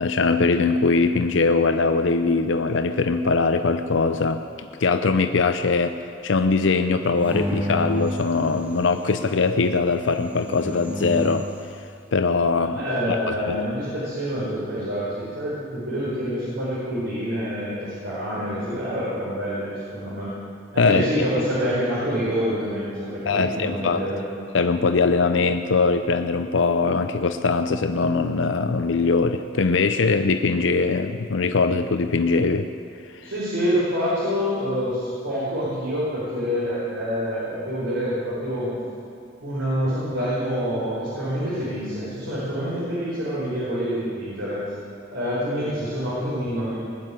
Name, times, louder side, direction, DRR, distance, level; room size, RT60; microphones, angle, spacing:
voice 1, 0.0-11.8 12.1-12.8 13.1-13.2 13.5-13.6 20.8-21.0 23.3-24.0 24.5-32.7 33.1-33.3, left 4 dB, 75° left, 8 dB, 0.6 m, -21 dB
sound 1, 7.2-9.2 10.2-11.7, equal, 10° right, 1.3 m, -31 dB
voice 2, 12.7-20.3 20.7-24.2 33.2-38.7 39.4-44.6 45.1-46.8, equal, 80° right, -9 dB, 5.1 m, -27 dB
20.0 x 7.6 x 9.6 m, 2.5 s
head